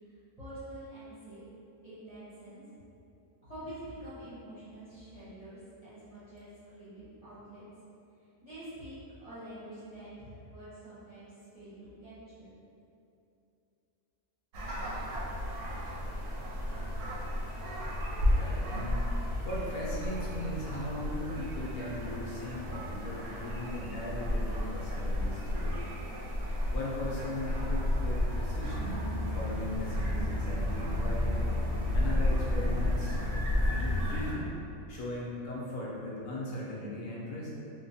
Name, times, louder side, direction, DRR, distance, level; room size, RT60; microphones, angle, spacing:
voice 1, 0.4-1.4 1.8-2.6 3.4-7.7 8.4-12.5, right 1 dB, 35° right, -14 dB, 0.6 m, -47 dB
sound 1, 14.5-34.3, left 1 dB, 70° right, 0.9 m, -32 dB
voice 2, 18.3-19.0 19.4-25.8 26.7-29.1 29.3-31.4 31.9-33.2 33.6-34.5 34.9-37.5, left 1 dB, 90° left, -5 dB, 1.1 m, -38 dB
sound 2, 28.6-33.9, left 1 dB, 90° right, 1.1 m, -37 dB
2.9 x 2.2 x 2.6 m, 2.7 s
omnidirectional pair, 1.6 m